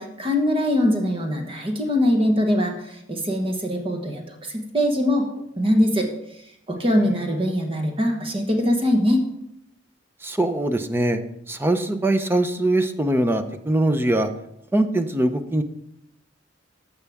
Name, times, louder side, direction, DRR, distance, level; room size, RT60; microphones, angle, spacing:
voice 1, 0.0-4.2 4.5-6.1 6.7-9.2, left 1 dB, 30° right, 3 dB, 1.2 m, -22 dB
voice 2, 10.2-11.2 11.5-14.3 14.7-15.6, right 1 dB, 10° right, 8 dB, 0.6 m, -22 dB
15.5 x 5.6 x 3.5 m, 0.77 s
head